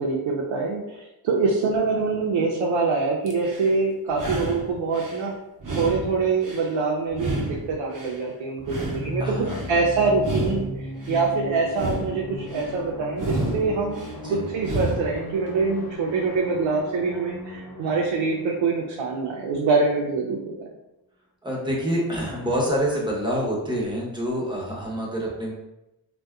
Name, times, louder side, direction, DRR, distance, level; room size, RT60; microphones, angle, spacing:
voice 1, 0.0-5.3 5.8-14.0 14.3-20.7, right 4 dB, 80° right, -2 dB, 0.5 m, -25 dB
sound 1, 3.3-3.7 4.1-5.2 5.6-6.7 7.1-8.2 8.6-9.7 10.1-11.2 11.6-12.7 13.1-14.1 14.6-15.2, right 2 dB, 45° right, 0.7 m, -31 dB
sound 2, 8.6-20.1, left 1 dB, 50° left, 0.6 m, -37 dB
voice 2, 9.2-9.6 14.2-14.5 21.4-25.5, equal, 10° right, -4 dB, 0.8 m, -27 dB
2.6 x 2.2 x 2.3 m, 0.93 s
cardioid pair, 75°, 47 cm